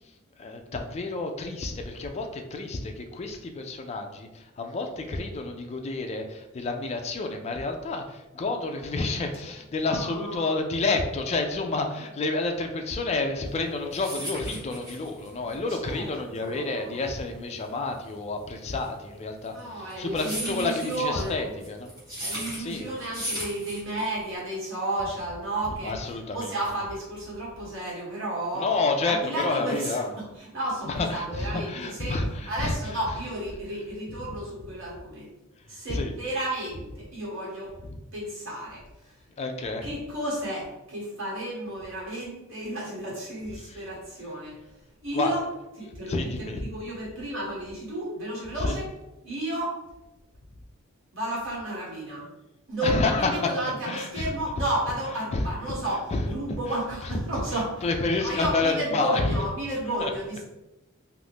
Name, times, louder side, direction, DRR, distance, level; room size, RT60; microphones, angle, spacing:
voice 1, 0.4-21.9 22.6-22.9 25.8-26.5 28.5-30.1 30.9-33.0 34.3-34.4 35.9-36.1 37.9-38.0 39.4-39.9 43.7-43.8 45.1-45.3 46.0-46.6 48.6-48.8 52.8-53.5 53.9-54.3 55.3-55.5 56.1-56.2 56.7-56.8 57.5-59.4 60.0-60.1, left 3 dB, 30° left, 5 dB, 0.3 m, -29 dB
voice 2, 9.9-10.6 15.8-16.1 16.4-16.9 19.5-21.5 22.2-25.9 26.3-28.7 29.0-30.0 30.4-32.2 32.5-35.3 35.7-37.7 38.1-38.8 39.8-44.6 45.0-45.4 45.8-48.9 49.2-49.8 51.1-52.3 52.7-57.9 58.2-60.4, right 1 dB, 65° right, -6 dB, 1.5 m, -32 dB
sound 1, 13.6-24.3, equal, 20° right, 1.0 m, -37 dB
2.6 x 2.5 x 3.4 m, 0.99 s
head